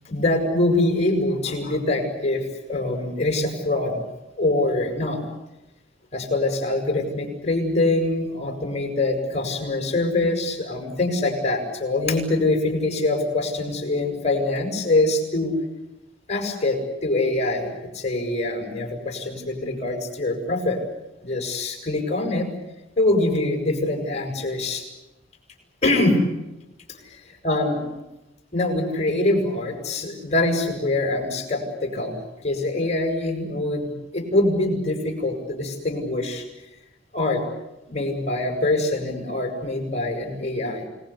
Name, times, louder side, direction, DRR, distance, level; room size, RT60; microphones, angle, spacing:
voice 1, 0.1-4.0 4.4-5.2 6.1-15.5 16.3-20.8 21.2-22.5 23.0-24.8 25.8-26.2 27.4-27.8 28.5-32.2 32.4-36.5 37.1-37.4 37.9-40.8, left 2 dB, 35° left, 3 dB, 7.0 m, -24 dB
29.5 x 20.0 x 8.5 m, 0.98 s
head